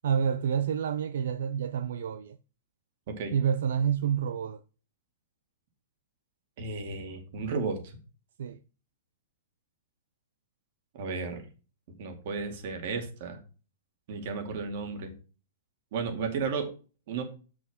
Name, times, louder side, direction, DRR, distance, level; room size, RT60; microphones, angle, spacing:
voice 1, 0.0-2.4 3.3-4.6 8.4-8.6, right 8 dB, 75° right, 0.5 m, -28 dB
voice 2, 6.6-7.8 11.0-11.4 12.0-13.4 14.1-15.1 15.9-16.7 17.1-17.2, right 4 dB, 45° right, 2.2 m, -33 dB
8.0 x 6.2 x 3.6 m
hypercardioid pair, 170°, 0 cm